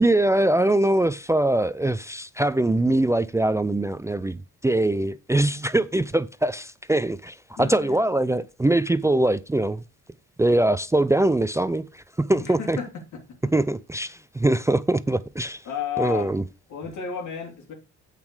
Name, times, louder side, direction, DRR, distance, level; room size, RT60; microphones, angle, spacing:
voice 1, 0.0-9.8 10.4-12.8 13.5-15.6 16.0-16.4, right 1 dB, 10° right, 0.5 m, -22 dB
voice 2, 7.6-8.0 12.4-13.2 15.7-16.3 16.7-17.7, left 8 dB, 75° left, 3.3 m, -32 dB
8.4 x 7.1 x 4.8 m
cardioid pair, 90°, 30 cm